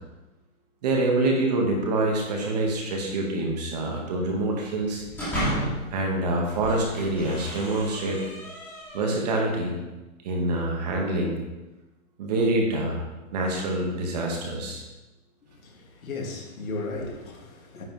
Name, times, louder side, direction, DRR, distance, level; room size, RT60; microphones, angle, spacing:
voice 1, 0.8-5.0 5.9-8.2 8.9-9.8 10.2-11.4 12.2-13.0 13.3-14.8, right 2 dB, 30° right, 0 dB, 1.4 m, -26 dB
sound 1, 4.8-5.9 6.4-9.2, equal, 5° left, 2.3 m, -33 dB
voice 2, 15.6-17.8, left 3 dB, 75° left, 0 dB, 2.3 m, -35 dB
9.4 x 8.0 x 3.1 m, 1.1 s
hypercardioid pair, 170°, 42 cm